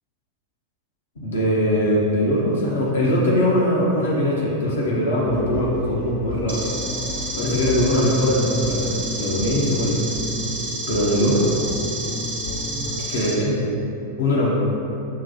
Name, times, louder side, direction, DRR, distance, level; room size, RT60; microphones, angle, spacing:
voice 1, 1.2-6.7 7.4-10.0 10.9-11.5 13.1-13.7 14.2-14.6, equal, 65° left, -5 dB, 0.8 m, -21 dB
sound 1, 5.3-13.0, left 2 dB, 40° left, 0.4 m, -31 dB
sound 2, 6.5-13.3, right 2 dB, 55° right, 0.8 m, -30 dB
5.6 x 2.2 x 2.8 m, 2.7 s
figure-of-eight pair, 90°, 0 cm